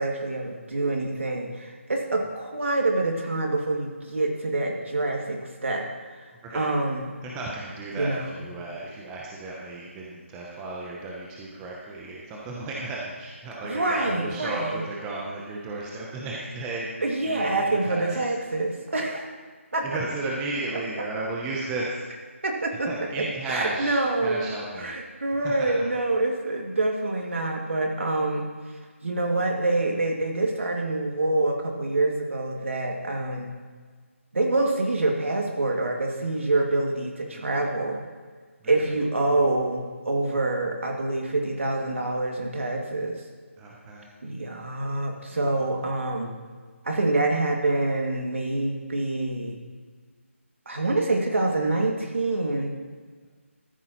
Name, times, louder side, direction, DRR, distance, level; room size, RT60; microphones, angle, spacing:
voice 1, 0.0-5.9 6.5-7.2 8.0-8.3 13.6-14.8 17.0-19.3 19.7-19.9 22.4-22.9 23.5-24.5 24.8-28.4 29.0-33.5 34.3-38.0 38.6-43.2 44.2-46.3 46.8-49.6 50.7-52.8, right 2 dB, 65° right, 1 dB, 2.2 m, -26 dB
voice 2, 7.2-16.9 17.2-18.3 19.8-22.0 22.7-23.9 24.2-24.9 25.3-25.9 37.2-37.5 38.6-39.0 43.6-44.1 45.3-45.7, right 2 dB, 10° right, -3 dB, 0.6 m, -34 dB
13.5 x 10.5 x 3.0 m, 1.5 s
figure-of-eight pair, 170°, 7 cm